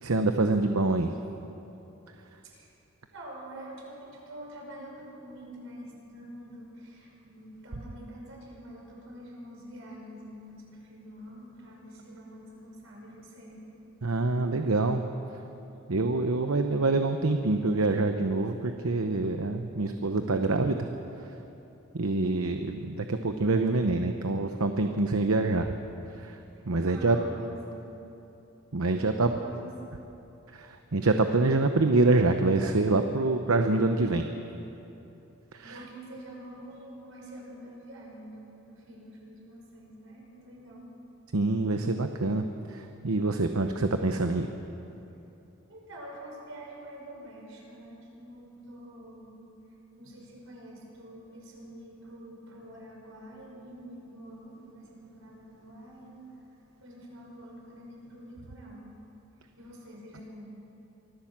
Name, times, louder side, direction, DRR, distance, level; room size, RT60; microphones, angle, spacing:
voice 1, 0.0-1.2 14.0-15.0 15.9-20.9 21.2-21.4 21.9-25.7 26.1-27.2 28.7-29.3 30.5-34.3 35.5-35.8 41.3-44.5, right 2 dB, 85° right, 6 dB, 0.9 m, -26 dB
voice 2, 3.1-13.6 26.5-27.5 29.0-29.7 35.6-40.9 45.7-49.4 50.0-56.2 56.8-58.9 59.4-60.5, right 1 dB, 70° right, -1 dB, 5.6 m, -46 dB
24.5 x 15.0 x 7.4 m, 3.0 s
head